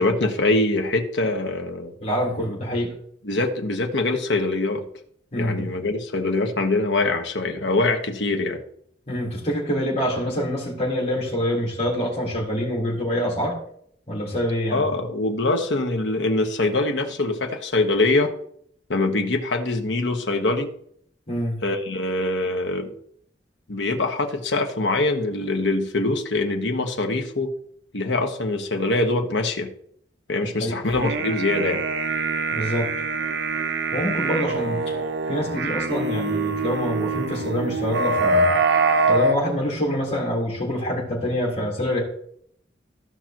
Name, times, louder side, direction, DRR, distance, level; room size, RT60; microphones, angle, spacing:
voice 1, 0.0-1.9 3.2-4.8 5.4-8.6 14.7-18.3 18.9-20.7 21.6-22.9 23.7-27.5 27.9-29.7 30.3-31.8, left 2 dB, 85° left, 4 dB, 1.3 m, -23 dB
voice 2, 2.0-2.9 5.3-5.7 9.1-13.6 14.1-14.8 21.3-21.6 30.6-30.8 32.5-32.9 33.9-34.9 35.3-38.5 39.1-42.0, equal, 40° left, -4 dB, 3.8 m, -25 dB
sound 1, 30.9-39.4, right 3 dB, 75° right, 0.7 m, -24 dB
15.0 x 5.8 x 3.0 m, 0.66 s
head